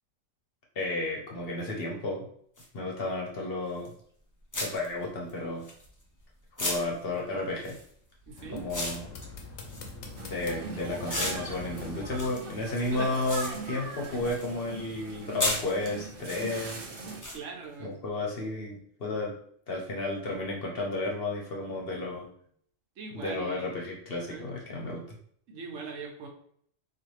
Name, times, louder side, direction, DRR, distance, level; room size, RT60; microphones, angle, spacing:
voice 1, 0.7-2.3 2.7-3.9 4.6-5.6 6.6-7.8 8.5-9.1 10.1-16.8 17.8-19.3 19.7-22.3 23.1-25.0, left 2 dB, 55° left, -1 dB, 0.9 m, -32 dB
sound 1, 2.6-2.7 3.8-4.0 4.5-6.2 6.6-10.6 11.1-14.5 14.8-16.4 17.2-17.4, left 1 dB, 25° left, 0.4 m, -35 dB
voice 2, 8.3-8.6 12.9-13.2 17.3-18.2 23.0-23.8 24.3-24.4 25.5-26.3, right 4 dB, 75° right, 2 dB, 1.1 m, -41 dB
sound 2, 8.4-12.2, left 3 dB, 80° left, 1.0 m, -43 dB
sound 3, 10.1-17.2, right 3 dB, 55° right, 0.8 m, -41 dB
4.1 x 2.5 x 3.1 m, 0.63 s
omnidirectional pair, 1.3 m